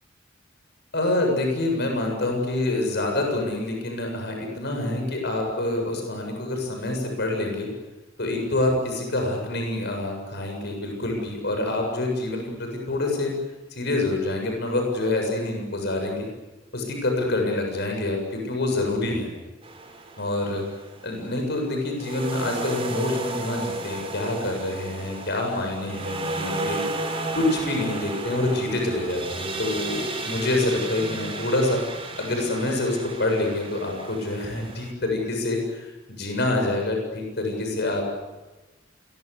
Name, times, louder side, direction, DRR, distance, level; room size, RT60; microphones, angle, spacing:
voice 1, 0.9-7.7 8.2-13.3 13.7-16.3 16.7-19.3 20.2-20.6 21.0-26.8 27.3-31.8 32.2-38.0, left 2 dB, 60° left, 2 dB, 7.2 m, -26 dB
sound 1, 19.6-21.1 22.0-34.9, right 2 dB, 30° right, 3.9 m, -33 dB
28.5 x 23.5 x 8.4 m, 1.1 s
head